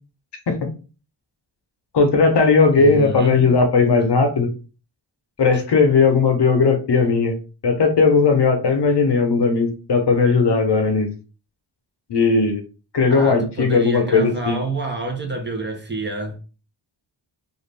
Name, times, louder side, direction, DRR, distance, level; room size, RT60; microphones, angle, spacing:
voice 1, 1.9-4.5 5.4-7.4 7.6-11.1 12.1-12.6 12.9-14.6, left 4 dB, 60° left, 0.8 m, -17 dB
voice 2, 2.8-3.5 5.5-5.6 13.1-16.4, right 2 dB, 25° right, 0.7 m, -28 dB
2.5 x 2.4 x 3.3 m
wide cardioid pair, 90°, 47 cm